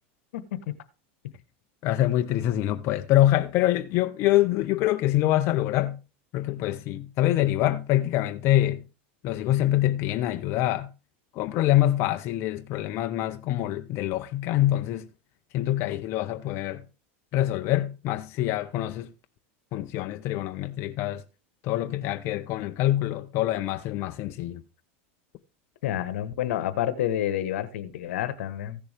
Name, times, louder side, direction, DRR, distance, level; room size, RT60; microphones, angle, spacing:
voice 1, 0.3-0.7 25.8-28.8, left 11 dB, 80° left, 1.1 m, -29 dB
voice 2, 1.8-6.0 6.3-8.8 9.2-10.9 11.3-15.1 15.5-16.8 17.3-19.1 19.7-21.2 21.6-24.6, left 14 dB, 45° left, 0.6 m, -25 dB
15.0 x 6.9 x 3.4 m
supercardioid pair, 135°, 7 cm